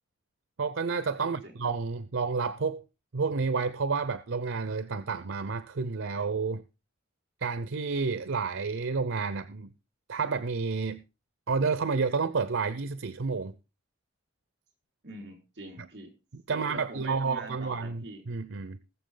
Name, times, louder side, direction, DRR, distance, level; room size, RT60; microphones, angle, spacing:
voice 1, 0.6-2.8 3.1-6.6 7.4-9.7 10.1-11.0 11.5-13.5 16.3-18.8, right 4 dB, 85° right, 0.7 m, -30 dB
voice 2, 15.0-16.1 16.5-18.2, right 2 dB, 55° right, 4.7 m, -43 dB
20.5 x 7.1 x 3.8 m
head